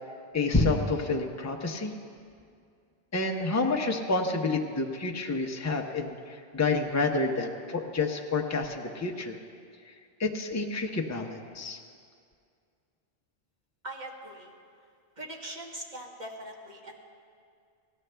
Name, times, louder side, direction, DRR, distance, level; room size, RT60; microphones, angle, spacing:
voice 1, 0.3-2.0 3.1-9.4 10.2-11.8, left 3 dB, 20° left, 2 dB, 0.7 m, -29 dB
voice 2, 13.8-14.5 15.2-17.0, right 1 dB, 45° right, -2 dB, 1.6 m, -41 dB
17.0 x 12.5 x 3.4 m, 2.3 s
omnidirectional pair, 1.1 m